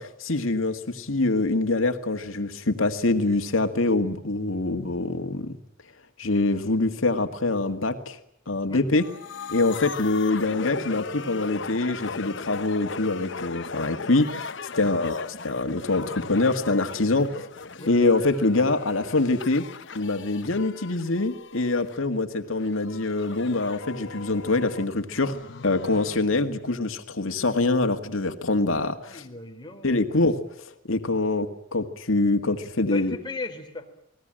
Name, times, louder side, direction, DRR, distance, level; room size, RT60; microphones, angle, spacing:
voice 1, 0.0-5.6 6.2-8.2 8.5-9.0 9.5-14.5 14.7-17.5 17.9-19.7 19.9-25.3 25.6-29.2 29.8-33.2, left 2 dB, 85° left, 6 dB, 1.9 m, -24 dB
sound 1, 9.0-22.0 22.6-26.2, left 4 dB, 60° left, 1.0 m, -38 dB
voice 2, 29.0-30.1 32.9-33.9, left 3 dB, 20° left, 2 dB, 4.0 m, -37 dB
30.0 x 20.0 x 9.0 m, 0.75 s
head